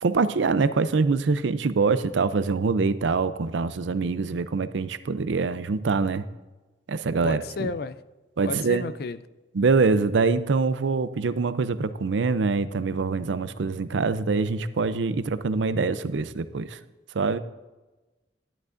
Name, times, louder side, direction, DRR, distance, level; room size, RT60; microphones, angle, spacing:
voice 1, 0.0-6.2 6.9-7.7 8.4-8.9 9.5-16.8 17.1-17.4, right 4 dB, 80° right, 0.5 m, -24 dB
voice 2, 7.2-8.0 8.4-9.2, left 4 dB, 55° left, 0.4 m, -32 dB
12.5 x 10.5 x 2.5 m
head